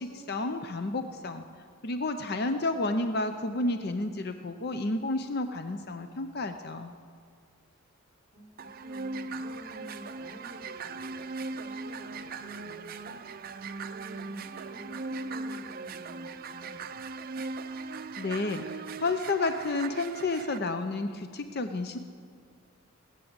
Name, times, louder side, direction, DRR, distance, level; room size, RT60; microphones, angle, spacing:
voice 1, 0.0-1.4 1.8-6.9 18.2-18.7 19.0-22.0, left 2 dB, 50° left, 8 dB, 0.6 m, -31 dB
voice 2, 8.3-13.6 13.9-16.9, equal, 10° right, -4 dB, 4.0 m, -50 dB
sound 1, 8.6-20.6, right 3 dB, 45° right, 0.6 m, -39 dB
20.0 x 8.4 x 7.9 m, 2.1 s
head